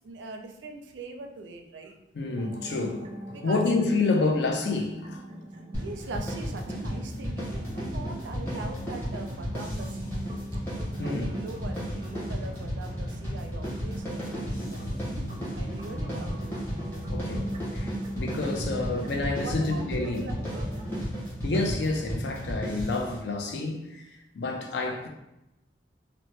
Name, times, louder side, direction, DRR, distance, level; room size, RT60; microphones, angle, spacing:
voice 1, 0.0-2.0 3.3-3.8 4.2-4.4 5.7-10.1 11.0-14.9 15.5-16.5 19.4-20.7, right 2 dB, 85° right, 0.4 m, -41 dB
voice 2, 2.1-3.1 3.4-5.2 11.0-11.3 17.1-20.2 21.4-25.1, left 3 dB, 75° left, 0.5 m, -29 dB
sound 1, 2.3-21.0, right 1 dB, 30° right, 0.5 m, -41 dB
sound 2, 5.7-23.2, equal, 15° left, 0.9 m, -34 dB
2.7 x 2.1 x 3.1 m
head